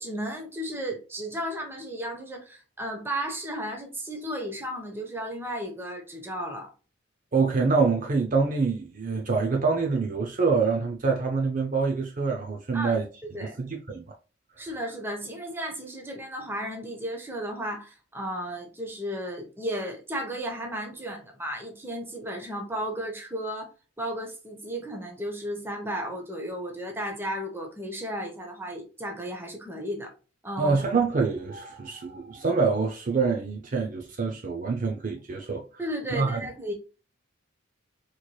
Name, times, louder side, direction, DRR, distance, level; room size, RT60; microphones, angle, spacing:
voice 1, 0.0-6.7 12.7-13.0 13.2-13.5 14.6-23.7 24.0-30.1 30.4-30.8 35.8-36.7, equal, 10° right, 0.8 m, -34 dB
voice 2, 7.3-13.1 13.4-14.1 30.6-35.6 36.1-36.4, right 4 dB, 40° right, 0.5 m, -26 dB
4.4 x 3.1 x 2.2 m
head